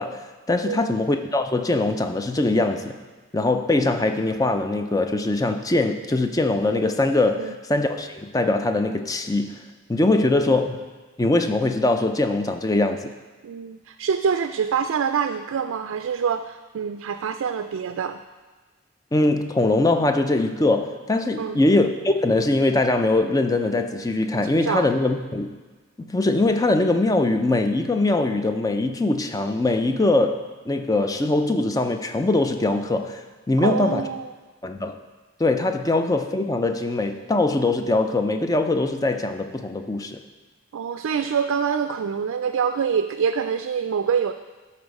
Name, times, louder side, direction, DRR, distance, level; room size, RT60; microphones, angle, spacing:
voice 1, 0.0-3.0 3.3-9.6 9.9-10.8 11.2-13.1 19.1-25.6 26.0-34.1 34.6-35.0 35.4-40.2, left 2 dB, 15° left, 7 dB, 0.4 m, -22 dB
voice 2, 0.6-0.9 7.4-7.5 10.2-10.6 13.4-18.2 21.4-21.6 24.6-24.9 33.6-34.3 40.7-44.3, right 7 dB, 80° right, 9 dB, 0.3 m, -25 dB
12.5 x 4.3 x 5.2 m, 1.3 s
head